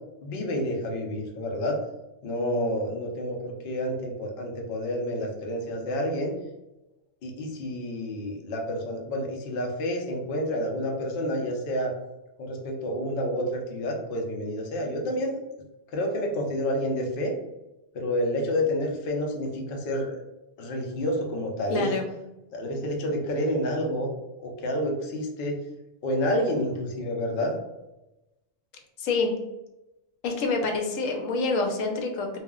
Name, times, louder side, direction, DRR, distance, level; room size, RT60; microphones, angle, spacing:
voice 1, 0.2-1.8 2.2-6.3 7.2-11.9 12.4-15.4 15.9-17.3 17.9-20.2 20.6-21.9 22.5-24.1 24.4-25.6 26.0-27.6, equal, 55° left, 1 dB, 0.6 m, -29 dB
voice 2, 21.7-22.0 29.0-29.3 30.2-32.4, left 3 dB, 85° left, 3 dB, 1.0 m, -27 dB
2.4 x 2.1 x 3.5 m, 0.96 s
omnidirectional pair, 1.3 m